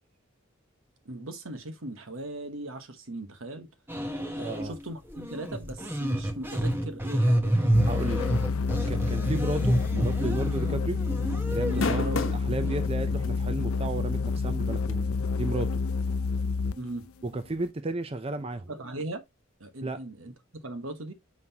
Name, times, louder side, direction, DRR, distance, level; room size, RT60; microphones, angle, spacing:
voice 1, 1.0-3.7 4.4-8.4 11.6-12.2 16.8-17.1 18.7-19.2 19.6-20.3 20.6-21.1, right 1 dB, 75° right, 1.1 m, -38 dB
sound 1, 3.9-4.7 5.1-12.1 12.6-12.7, right 1 dB, 10° right, 0.9 m, -28 dB
voice 2, 4.3-4.7 7.8-8.2 8.9-11.0 11.5-15.1 15.4-15.8 17.2-18.7 19.8-20.0, right 2 dB, 25° right, 0.5 m, -33 dB
sound 2, 7.7-16.9, left 4 dB, 85° left, 0.5 m, -28 dB
sound 3, 9.8-10.1 10.4-10.5 11.5-12.5 13.2-13.3 14.9-15.0, left 3 dB, 70° left, 1.1 m, -29 dB
6.2 x 5.6 x 2.8 m
head